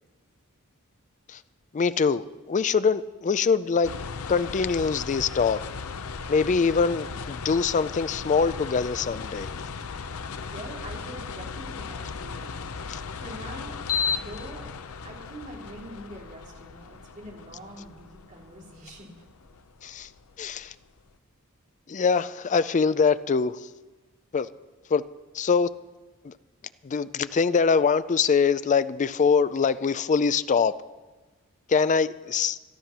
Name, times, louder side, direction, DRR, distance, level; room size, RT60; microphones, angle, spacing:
voice 1, 1.7-3.9 4.3-5.6 6.3-9.5 12.9-13.0 19.8-20.1 20.4-20.7 21.9-23.6 24.3-24.5 24.9-25.0 25.3-25.7 26.2-26.3 26.8-30.7 31.7-32.6, left 5 dB, 35° left, 14 dB, 0.4 m, -23 dB
sound 1, 3.8-21.0, left 5 dB, 70° left, 0.7 m, -36 dB
voice 2, 10.5-13.8 14.1-14.7 15.0-19.5, right 1 dB, 35° right, -3 dB, 3.5 m, -44 dB
13.0 x 12.5 x 6.0 m, 1.2 s
head